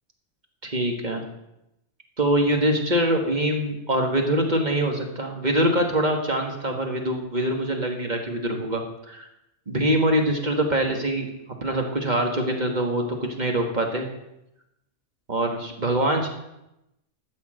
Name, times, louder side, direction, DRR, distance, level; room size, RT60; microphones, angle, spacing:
voice 1, 0.6-1.2 2.2-9.3 9.7-11.3 11.6-13.0 13.4-14.1 15.3-16.3, right 1 dB, 35° right, 2 dB, 1.6 m, -24 dB
13.0 x 4.9 x 7.6 m, 0.88 s
omnidirectional pair, 1.3 m